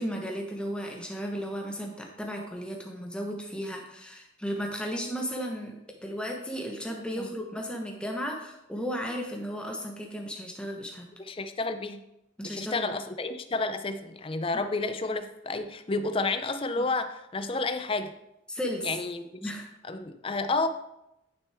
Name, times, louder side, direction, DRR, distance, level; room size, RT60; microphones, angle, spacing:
voice 1, 0.0-5.7 6.0-11.1 12.4-12.9 16.8-16.9 18.5-19.0 19.4-19.7, equal, 5° left, 1 dB, 1.0 m, -34 dB
voice 2, 11.2-12.0 12.4-18.1 18.8-19.5 19.9-20.7, left 3 dB, 25° left, 9 dB, 0.4 m, -31 dB
9.8 x 6.2 x 3.5 m, 0.86 s
head